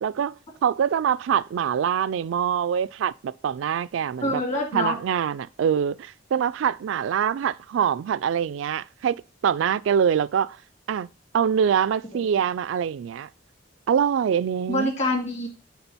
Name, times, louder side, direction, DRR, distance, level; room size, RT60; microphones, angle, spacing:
voice 1, 0.0-0.4 0.6-4.4 4.7-9.2 9.4-10.6 10.9-11.1 11.3-13.3 13.9-14.9, right 8 dB, 70° right, 0.3 m, -24 dB
voice 2, 4.2-5.0 12.1-12.2 14.7-15.5, left 1 dB, 35° left, 2.1 m, -25 dB
8.9 x 3.6 x 4.1 m
head